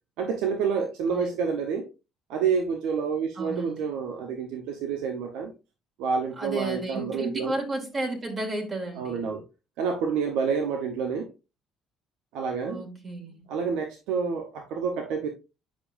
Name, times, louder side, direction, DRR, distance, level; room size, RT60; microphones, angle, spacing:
voice 1, 0.2-1.9 2.3-5.5 6.0-7.5 9.0-9.4 9.8-11.3 12.3-12.8 13.5-15.3, right 6 dB, 80° right, 0.9 m, -28 dB
voice 2, 3.4-3.9 6.4-9.3 12.7-13.5, right 2 dB, 35° right, 2.5 m, -33 dB
8.7 x 5.1 x 2.6 m
supercardioid pair, 70°, 0 cm